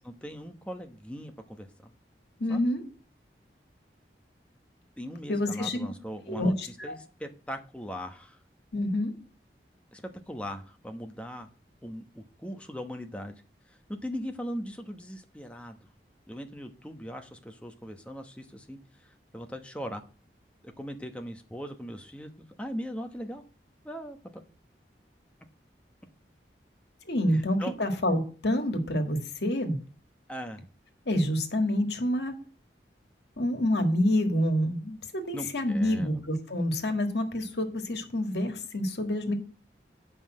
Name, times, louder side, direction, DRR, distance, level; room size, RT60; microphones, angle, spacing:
voice 1, 0.0-1.9 2.5-2.7 5.0-8.4 9.9-11.5 11.8-13.4 13.9-15.8 16.3-18.8 19.3-20.0 20.6-23.4 23.8-24.4 27.3-27.7 30.3-30.6 35.3-36.2, equal, 5° left, 5 dB, 1.0 m, -39 dB
voice 2, 2.4-2.8 5.3-5.9 6.3-7.0 8.7-9.1 27.1-29.8 31.1-32.4 33.4-39.3, left 1 dB, 75° left, 6 dB, 1.8 m, -27 dB
8.4 x 5.6 x 7.5 m, 0.39 s
head